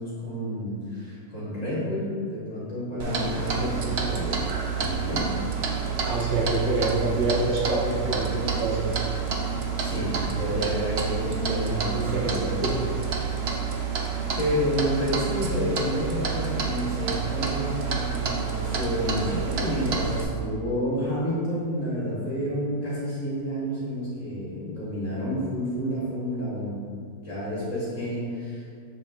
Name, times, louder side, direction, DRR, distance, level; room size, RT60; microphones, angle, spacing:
voice 1, 0.0-4.3 4.7-5.3 9.8-12.4 14.4-26.8 27.2-28.7, equal, 45° left, -9 dB, 1.7 m, -29 dB
Clock, 3.0-20.2, right 6 dB, 60° right, 0.6 m, -29 dB
voice 2, 6.1-8.9 11.5-12.7, right 2 dB, 80° right, -3 dB, 1.7 m, -27 dB
7.3 x 7.2 x 2.5 m, 2.3 s
omnidirectional pair, 1.9 m